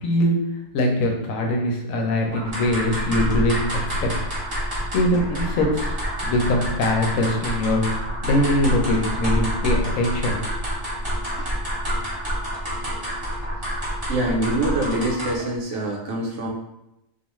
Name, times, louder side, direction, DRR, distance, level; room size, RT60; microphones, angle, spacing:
voice 1, 0.0-0.3 0.7-4.1 4.9-7.8 8.2-10.6, left 1 dB, 75° left, 1 dB, 0.9 m, -22 dB
sound 1, 2.3-15.5, equal, 30° right, 0.9 m, -27 dB
voice 2, 14.1-16.5, right 1 dB, 65° right, -1 dB, 0.8 m, -25 dB
2.4 x 2.3 x 3.0 m, 0.88 s
omnidirectional pair, 1.4 m